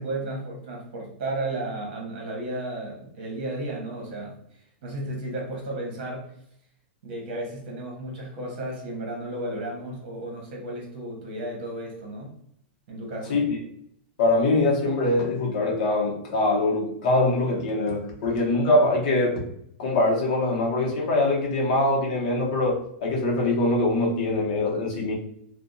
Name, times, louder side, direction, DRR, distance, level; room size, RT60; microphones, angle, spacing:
voice 1, 0.0-4.4 4.8-6.2 7.0-12.3 12.9-13.4, right 1 dB, 55° right, -1 dB, 1.1 m, -33 dB
voice 2, 14.2-19.4 19.8-25.2, left 2 dB, 45° left, -2 dB, 0.7 m, -23 dB
2.7 x 2.1 x 2.5 m, 0.70 s
supercardioid pair, 160°, 6 cm